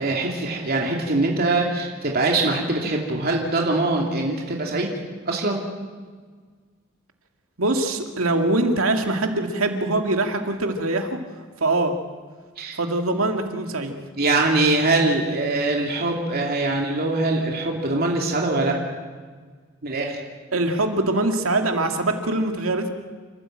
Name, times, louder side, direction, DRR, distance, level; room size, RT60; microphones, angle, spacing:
voice 1, 0.0-4.9 5.3-5.6 12.6-12.8 14.2-18.8 19.8-20.2, right 2 dB, 50° right, 0 dB, 2.9 m, -23 dB
voice 2, 7.6-11.2 11.6-11.9 12.8-13.9 20.5-22.9, right 2 dB, 85° right, 4 dB, 2.3 m, -23 dB
29.0 x 13.5 x 9.0 m, 1.5 s
head